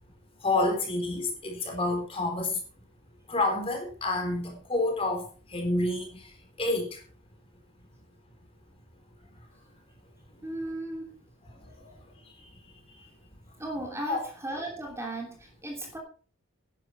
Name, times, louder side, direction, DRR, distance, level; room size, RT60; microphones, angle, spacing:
voice 1, 0.4-2.6 3.3-5.2 5.5-6.2 6.6-7.0 11.6-11.7 14.1-14.2, left 2 dB, 25° left, 3 dB, 3.9 m, -28 dB
voice 2, 10.4-11.1 13.6-16.0, right 1 dB, 15° right, 0 dB, 3.0 m, -36 dB
11.5 x 11.0 x 4.6 m, 0.39 s
head